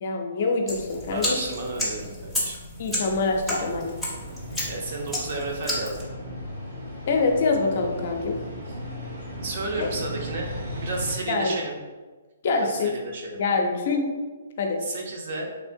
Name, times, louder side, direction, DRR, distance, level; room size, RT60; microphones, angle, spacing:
voice 1, 0.0-1.4 2.8-3.9 7.1-8.4 9.8-9.9 11.3-11.5 12.4-12.9 13.4-14.1 14.6-14.8, left 3 dB, 50° left, 3 dB, 0.5 m, -25 dB
sound 1, 0.7-6.0, left 1 dB, 5° right, 0.6 m, -31 dB
voice 2, 1.1-2.6 4.7-6.1 9.4-11.8 12.5-13.4 14.8-15.5, right 2 dB, 50° right, 1 dB, 0.6 m, -32 dB
sound 2, 3.4-11.1, equal, 80° right, 1.4 m, -37 dB
3.2 x 2.8 x 2.6 m, 1.3 s
hypercardioid pair, 155°, 0 cm